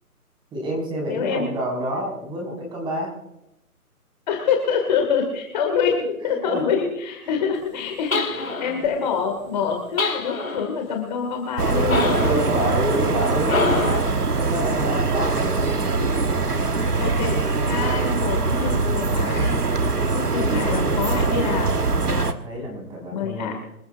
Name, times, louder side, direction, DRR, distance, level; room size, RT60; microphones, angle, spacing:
voice 1, 0.5-3.1 6.2-6.8 7.3-7.4 7.7-7.8 8.2-9.4 12.1-16.4 19.1-20.9 22.2-23.5, right 1 dB, 10° right, -1 dB, 5.3 m, -30 dB
voice 2, 1.1-1.5 4.3-12.4 16.8-19.6 20.1-21.8 22.0-22.3 23.1-23.5, left 6 dB, 30° left, 3 dB, 2.3 m, -26 dB
sound 1, 8.1-8.8 10.0-10.7 11.9-12.5 13.4-14.2, left 3 dB, 65° left, 2.7 m, -25 dB
sound 2, 11.6-22.3, right 3 dB, 90° right, 1.4 m, -22 dB
26.5 x 14.0 x 2.6 m, 0.87 s
figure-of-eight pair, 145°, 45 cm